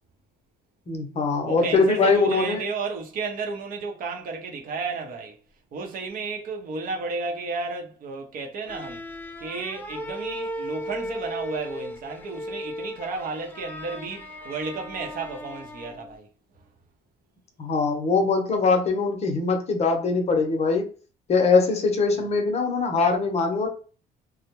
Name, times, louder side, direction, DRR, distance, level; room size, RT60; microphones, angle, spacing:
voice 1, 0.9-2.6 17.6-20.8 21.3-23.7, left 4 dB, 40° left, 0.7 m, -22 dB
voice 2, 1.4-5.4 5.7-9.0 9.4-16.3, right 4 dB, 55° right, 0.7 m, -33 dB
sound 1, 8.7-16.2, equal, 10° left, 0.4 m, -36 dB
2.2 x 2.1 x 2.9 m
cardioid pair, 110°, 17 cm